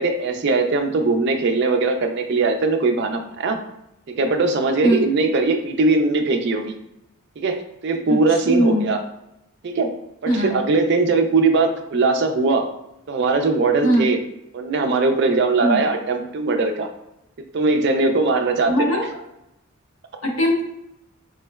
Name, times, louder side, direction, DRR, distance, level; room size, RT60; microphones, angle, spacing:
voice 1, 0.0-3.6 4.1-6.7 7.4-9.0 9.6-9.9 10.2-12.7 13.1-14.2 14.5-16.9 17.5-18.7, right 3 dB, 50° right, 5 dB, 0.4 m, -20 dB
voice 2, 8.1-8.9 10.3-10.6 13.8-14.1 15.6-15.8 18.7-19.2 20.2-20.6, equal, 65° left, -1 dB, 0.8 m, -20 dB
3.6 x 3.1 x 2.2 m, 0.83 s
head